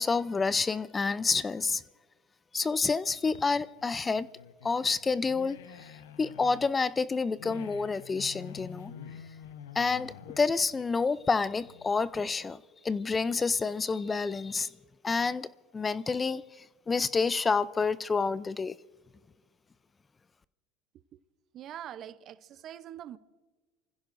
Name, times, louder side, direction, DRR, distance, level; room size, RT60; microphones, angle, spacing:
voice 1, 0.0-1.8 2.5-4.3 4.6-8.9 9.7-14.7 15.0-18.8, left 4 dB, 20° left, 0.4 m, -29 dB
sound 1, 3.1-12.1, left 8 dB, 90° left, 0.9 m, -48 dB
voice 2, 21.5-23.2, right 11 dB, 45° right, 0.7 m, -43 dB
29.0 x 15.5 x 2.6 m
supercardioid pair, 105°, 0 cm